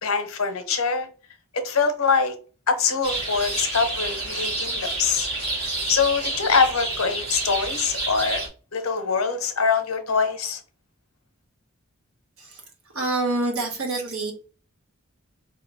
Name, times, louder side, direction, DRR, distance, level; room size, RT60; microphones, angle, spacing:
voice 1, 0.0-1.1 1.5-2.3 2.7-5.3 5.6-8.4 8.7-10.6, left 5 dB, 90° left, 0.8 m, -24 dB
sound 1, 3.0-8.5, right 2 dB, 55° right, 1.9 m, -29 dB
voice 2, 12.9-14.3, right 2 dB, 85° right, 1.2 m, -26 dB
4.1 x 2.8 x 2.6 m
head